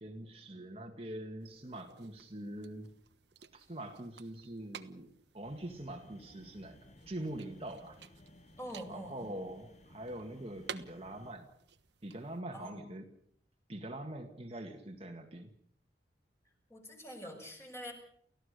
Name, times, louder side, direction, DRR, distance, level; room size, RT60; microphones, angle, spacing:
voice 1, 0.0-2.9 3.5-5.1 5.3-6.8 7.1-8.0 8.9-11.5 12.0-13.1 13.7-15.5, right 1 dB, 35° right, 3 dB, 1.9 m, -43 dB
sound 1, 1.4-12.4, right 6 dB, 80° right, 1.3 m, -54 dB
sound 2, 5.4-11.3, left 1 dB, 40° left, 1.6 m, -59 dB
voice 2, 8.6-9.4 12.5-12.9 16.7-17.9, equal, 15° left, 2 dB, 6.3 m, -45 dB
30.0 x 15.5 x 6.8 m, 0.64 s
head